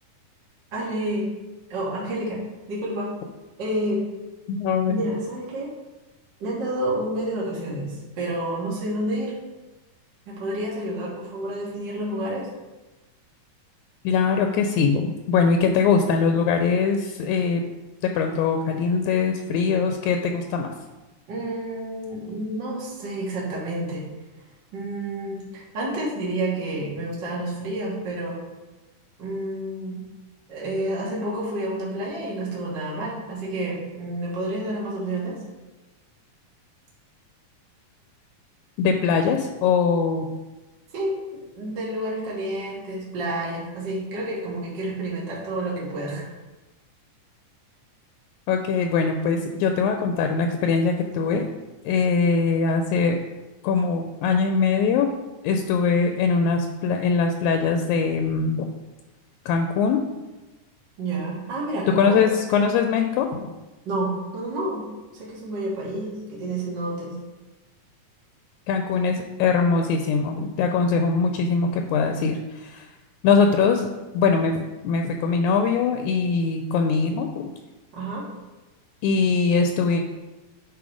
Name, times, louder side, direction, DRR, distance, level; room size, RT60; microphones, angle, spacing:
voice 1, 0.7-1.3 1.7-2.4 2.7-3.1 3.6-4.0 4.9-5.7 6.4-9.3 10.3-12.5 21.3-24.1 24.7-28.4 29.2-30.0 30.5-35.4 40.9-41.2 41.6-46.3 61.0-62.3 63.9-64.9 65.1-67.1 77.9-78.3, right 1 dB, 45° right, -6 dB, 1.8 m, -29 dB
voice 2, 4.5-5.0 14.0-17.6 18.0-20.7 38.8-40.3 48.5-51.5 51.9-53.2 53.6-55.1 55.4-58.7 59.5-60.0 62.0-63.5 68.7-72.8 73.2-77.5 79.0-80.0, left 5 dB, 80° left, 5 dB, 1.9 m, -22 dB
8.5 x 3.8 x 4.9 m, 1.1 s
omnidirectional pair, 3.5 m